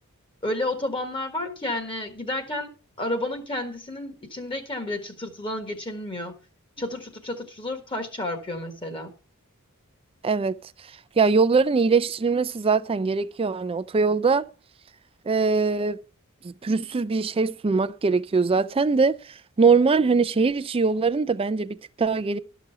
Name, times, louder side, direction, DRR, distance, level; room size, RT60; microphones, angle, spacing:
voice 1, 0.4-6.3 6.8-9.1, left 1 dB, 25° left, 1.3 m, -31 dB
voice 2, 10.2-10.6 11.2-14.5 15.3-16.0 16.4-22.4, right 4 dB, 25° right, 0.4 m, -22 dB
12.0 x 6.1 x 5.5 m
head